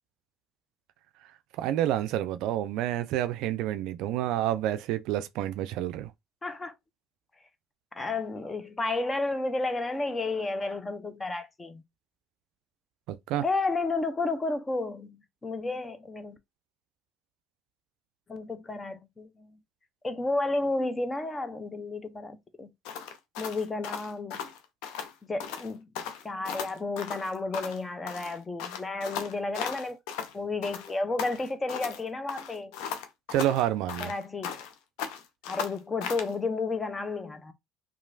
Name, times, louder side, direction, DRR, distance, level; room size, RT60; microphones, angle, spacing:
voice 1, 1.6-6.1 13.1-13.4 33.3-34.1, right 12 dB, 70° right, 0.3 m, -28 dB
voice 2, 6.4-6.7 8.0-11.8 13.4-16.4 18.3-19.6 20.0-22.7 23.4-24.4 25.3-25.9 26.2-30.0 30.3-32.7 34.0-34.6 35.5-37.5, left 3 dB, 25° left, 0.6 m, -32 dB
sound 1, 22.8-25.1 25.4-25.7 25.9-27.8 28.1-30.3 30.6-32.0 32.3-34.7 35.0-36.3, left 7 dB, 75° left, 0.5 m, -37 dB
3.0 x 2.4 x 2.6 m
hypercardioid pair, 70°, 0 cm